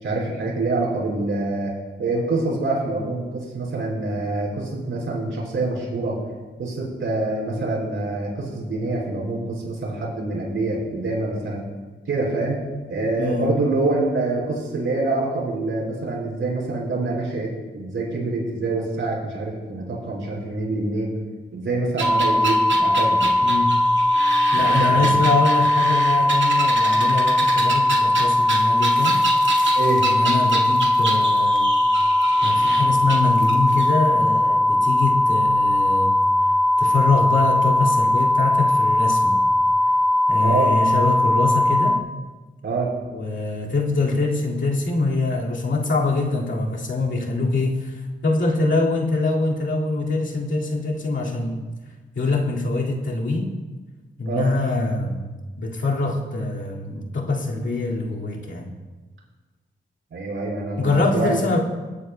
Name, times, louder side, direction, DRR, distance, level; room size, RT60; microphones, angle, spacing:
voice 1, 0.0-1.7 2.0-6.2 6.6-11.7 12.1-12.6 12.9-21.1 21.5-23.3 24.5-25.2 29.7-30.0 40.4-40.7 42.6-42.9 54.2-54.5 60.1-61.4, right 2 dB, 90° right, -4 dB, 4.7 m, -25 dB
voice 2, 13.2-13.5 23.4-23.8 24.5-29.2 30.0-31.7 32.4-36.2 36.8-39.4 40.3-42.0 43.1-47.9 48.2-51.6 52.2-53.6 54.2-55.3 55.6-58.7 60.8-61.6, left 3 dB, 75° left, -3 dB, 2.2 m, -24 dB
sound 1, 22.0-42.0, left 1 dB, ahead, 0.5 m, -19 dB
sound 2, 22.0-33.9, right 3 dB, 70° right, 1.9 m, -29 dB
22.0 x 11.5 x 2.2 m, 1.3 s
cardioid pair, 75°, 20 cm